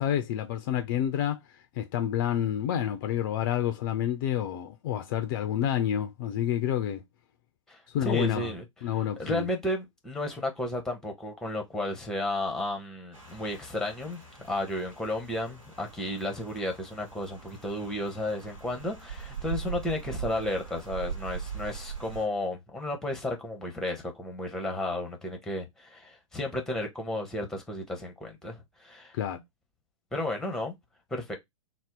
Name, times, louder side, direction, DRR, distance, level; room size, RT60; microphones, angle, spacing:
voice 1, 0.0-1.4 1.8-7.0 7.9-8.5 8.8-9.5 29.2-29.4, left 10 dB, 40° left, 0.4 m, -28 dB
voice 2, 7.7-8.6 9.2-14.2 14.5-29.1 30.1-30.7 31.1-31.4, left 1 dB, 5° left, 0.8 m, -33 dB
Rain, 13.1-22.3, right 6 dB, 75° right, 1.1 m, -41 dB
2.7 x 2.0 x 3.6 m
figure-of-eight pair, 105°, 17 cm